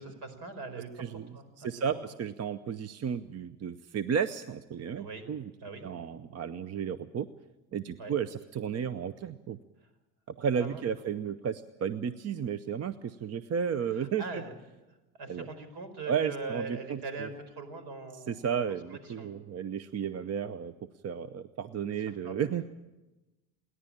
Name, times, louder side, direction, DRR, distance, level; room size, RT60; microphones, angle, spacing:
voice 1, 0.0-0.9 1.3-1.4 1.8-2.0 5.0-5.2 5.6-5.9 8.0-8.1 10.6-10.8 13.9-14.5 15.2-18.4 18.9-19.4 22.2-22.5, right 3 dB, 55° right, 10 dB, 4.9 m, -41 dB
voice 2, 1.6-5.5 5.8-7.3 7.7-9.6 10.3-14.4 15.3-15.5 16.1-17.3 18.1-20.7 21.0-22.6, right 7 dB, 35° right, 13 dB, 0.8 m, -33 dB
28.5 x 11.0 x 8.8 m, 1.1 s
supercardioid pair, 90°, 46 cm